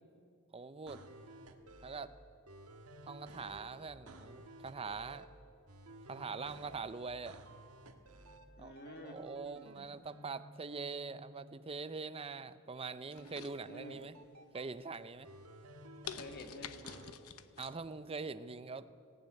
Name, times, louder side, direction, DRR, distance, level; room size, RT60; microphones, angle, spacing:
voice 1, 0.5-1.0 1.8-2.1 3.1-5.3 6.1-7.4 8.6-8.7 9.0-14.2 14.5-15.3 17.6-18.9, right 4 dB, 25° right, 13 dB, 0.6 m, -43 dB
sound 1, 0.9-2.1 2.5-5.3 5.7-8.5 8.8-11.7 13.1-14.6 15.2-17.1, right 1 dB, 85° right, 1.6 m, -54 dB
voice 2, 8.6-9.2 13.6-14.0 16.1-17.2, left 1 dB, 50° left, 5 dB, 2.1 m, -50 dB
sound 2, 13.1-14.1 14.6-15.0 15.4-15.5 16.1-17.7 18.1-18.2, left 8 dB, 85° left, 0.9 m, -48 dB
18.5 x 16.0 x 9.3 m, 2.5 s
head